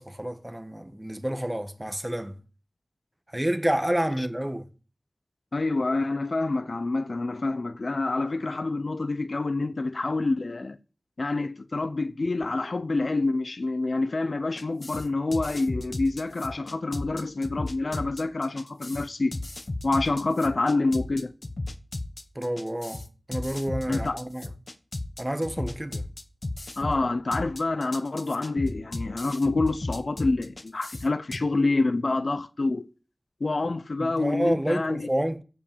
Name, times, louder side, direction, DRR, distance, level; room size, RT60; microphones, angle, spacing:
voice 1, 0.0-2.4 3.3-4.7 22.3-23.0 23.3-24.5 25.2-26.1 34.0-35.4, right 1 dB, 15° right, 1.4 m, -29 dB
voice 2, 5.5-10.8 11.2-19.3 19.8-21.3 23.9-24.2 26.8-32.9 33.4-35.1, left 3 dB, 70° left, 0.7 m, -27 dB
sound 1, 14.6-31.4, left 2 dB, 50° left, 1.2 m, -35 dB
15.0 x 5.4 x 7.2 m
wide cardioid pair, 55°, 0 cm